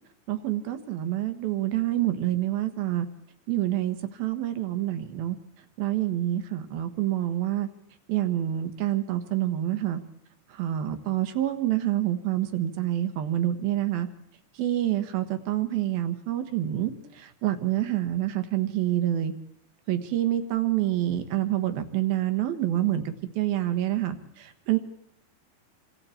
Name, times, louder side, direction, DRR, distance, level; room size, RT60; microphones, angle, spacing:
voice 1, 0.3-3.1 3.5-5.4 5.8-7.7 8.1-10.0 10.5-14.1 14.6-19.3 19.9-24.8, right 13 dB, 90° right, 9 dB, 3.3 m, -27 dB
27.5 x 25.0 x 4.5 m, 0.73 s
omnidirectional pair, 4.1 m